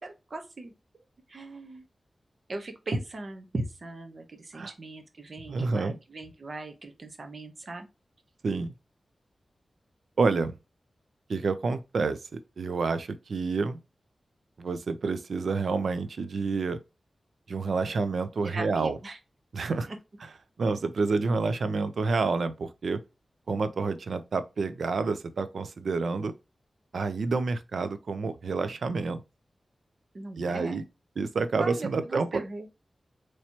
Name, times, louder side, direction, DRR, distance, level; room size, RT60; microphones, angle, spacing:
voice 1, 0.0-1.0 1.3-1.8 2.5-7.9 18.4-19.2 19.9-20.0 30.1-30.8 31.6-32.7, right 2 dB, 55° right, 1.0 m, -38 dB
voice 2, 5.5-6.0 8.4-8.7 10.2-10.6 11.3-13.8 14.6-16.8 17.5-19.0 19.5-19.9 20.6-23.0 23.5-26.3 26.9-29.2 30.4-30.8 31.2-32.4, right 4 dB, 80° right, 0.5 m, -28 dB
4.4 x 3.1 x 2.8 m
wide cardioid pair, 70°, 0 cm